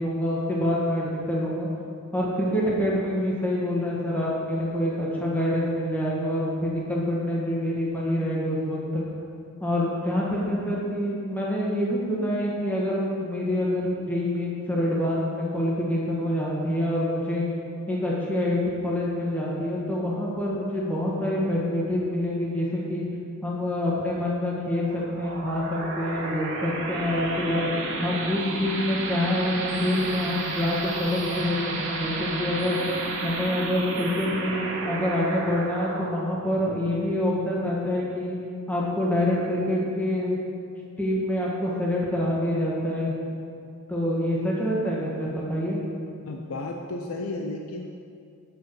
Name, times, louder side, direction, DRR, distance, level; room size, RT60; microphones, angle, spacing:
voice 1, 0.0-1.7 2.1-9.0 9.6-17.4 17.9-23.0 23.4-27.7 28.0-32.8 33.2-38.4 38.7-40.4 41.0-43.1 43.9-45.8, left 1 dB, 10° left, -5 dB, 1.5 m, -26 dB
sound 1, 24.8-38.0, right 2 dB, 65° right, 1.5 m, -32 dB
voice 2, 46.2-47.9, left 2 dB, 75° left, 2 dB, 0.6 m, -33 dB
8.1 x 7.3 x 4.7 m, 2.4 s
head